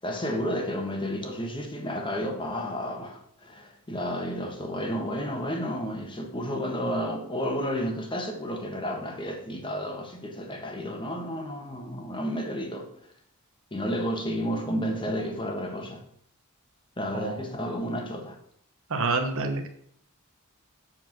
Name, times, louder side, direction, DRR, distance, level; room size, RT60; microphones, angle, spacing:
voice 1, 0.0-12.9 13.7-16.0 17.0-18.3, equal, 25° left, 1.3 m, -31 dB
voice 2, 18.9-19.7, right 3 dB, 65° right, 1.1 m, -27 dB
7.2 x 4.6 x 6.1 m
head